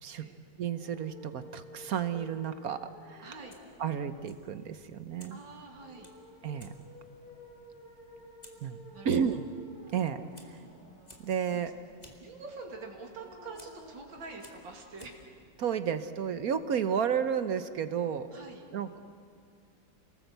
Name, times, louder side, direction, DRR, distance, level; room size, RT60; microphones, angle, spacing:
sound 1, 0.6-15.5, equal, 50° left, 7.0 m, -54 dB
voice 1, 0.6-3.3 3.8-5.4 6.4-6.7 8.6-8.8 9.0-9.4 9.9-10.6 11.2-11.7 15.6-18.3 18.7-19.0, right 7 dB, 60° right, 11 dB, 1.2 m, -32 dB
voice 2, 3.2-3.6 5.3-6.1 8.9-9.3 11.5-11.6 12.2-15.2 18.3-18.6, right 3 dB, 85° right, 1 dB, 3.2 m, -46 dB
Fire, 3.3-16.7, left 1 dB, 20° left, 2.3 m, -60 dB
28.5 x 19.5 x 8.1 m, 2.4 s
omnidirectional pair, 2.0 m